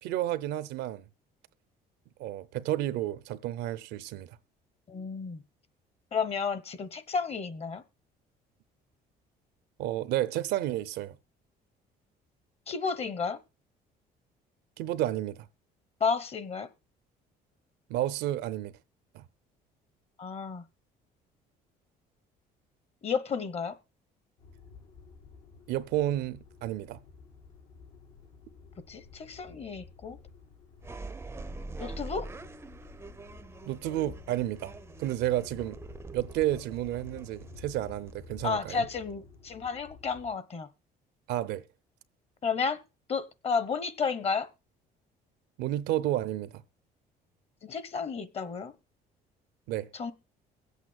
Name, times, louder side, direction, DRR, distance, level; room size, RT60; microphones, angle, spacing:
voice 1, 0.0-1.1 2.2-4.3 9.8-11.2 14.8-15.4 17.9-18.7 19.1-19.2 25.7-27.0 33.7-34.7 35.0-35.8 36.1-38.9 41.3-41.6 45.6-46.6 49.7-49.9, right 13 dB, 85° right, 0.7 m, -31 dB
voice 2, 4.9-5.4 6.1-7.8 12.7-13.4 16.0-16.7 20.2-20.6 23.0-23.8 28.9-30.2 31.8-32.3 38.4-40.7 42.4-42.8 43.1-44.5 47.6-48.7 49.9-50.1, left 5 dB, 35° left, 1.0 m, -32 dB
sound 1, 24.4-40.3, left 5 dB, 90° left, 3.6 m, -52 dB
sound 2, 30.8-39.4, right 3 dB, 15° right, 0.5 m, -45 dB
23.0 x 8.3 x 2.3 m
cardioid pair, 110°, 17 cm